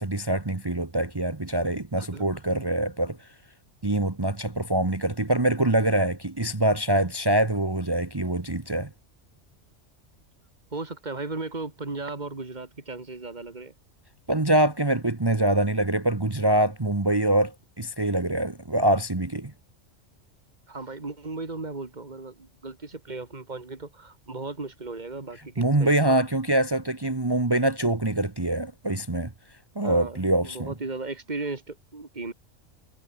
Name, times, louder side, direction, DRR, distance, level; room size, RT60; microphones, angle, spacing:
voice 1, 0.0-3.2 3.8-8.9 14.3-19.5 25.6-29.3 29.7-30.7, right 1 dB, 20° right, 1.3 m, -24 dB
voice 2, 10.7-13.7 20.7-26.2 29.8-32.3, right 3 dB, 35° right, 2.6 m, -36 dB
omnidirectional pair, 1.3 m